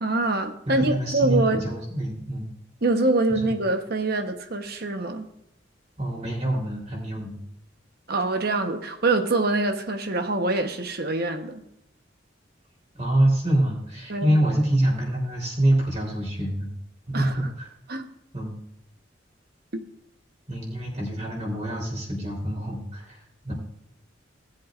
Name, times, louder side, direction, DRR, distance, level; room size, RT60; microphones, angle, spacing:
voice 1, 0.0-1.6 2.8-5.3 8.1-11.6 14.1-14.4 17.1-17.3 17.9-18.1 19.7-19.8, right 2 dB, 55° right, 1.1 m, -25 dB
voice 2, 0.7-2.5 3.3-3.5 6.0-7.4 12.9-16.7 17.1-17.7 18.3-18.5 20.5-23.5, right 1 dB, 35° right, 3.8 m, -26 dB
18.0 x 7.9 x 2.6 m
head